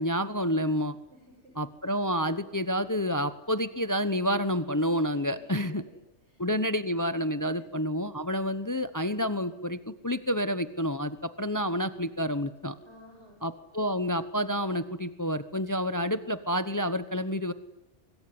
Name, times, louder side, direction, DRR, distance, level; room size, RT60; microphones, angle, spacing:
voice 1, 0.0-1.0 1.6-5.8 6.4-12.7 13.4-17.5, equal, 15° left, 12 dB, 1.0 m, -29 dB
voice 2, 1.1-1.6 5.3-5.4 6.2-6.4 7.3-7.6 12.8-13.4, equal, 65° right, 1 dB, 7.8 m, -53 dB
25.0 x 24.0 x 9.6 m, 0.96 s
omnidirectional pair, 1.2 m